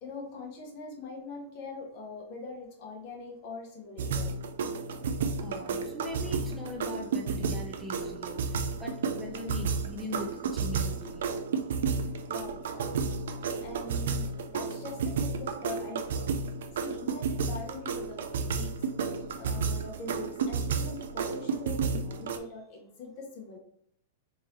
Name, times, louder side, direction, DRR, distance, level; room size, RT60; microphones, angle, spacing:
voice 1, 0.0-4.3 12.0-13.2 13.6-16.3 16.8-18.7 19.0-23.6, left 3 dB, 55° left, 0 dB, 1.3 m, -43 dB
sound 1, 4.0-22.4, right 5 dB, 75° right, 0.4 m, -32 dB
voice 2, 5.4-11.2, left 1 dB, 5° right, -1 dB, 0.8 m, -40 dB
3.6 x 2.8 x 3.1 m, 0.69 s
hypercardioid pair, 115°, 0 cm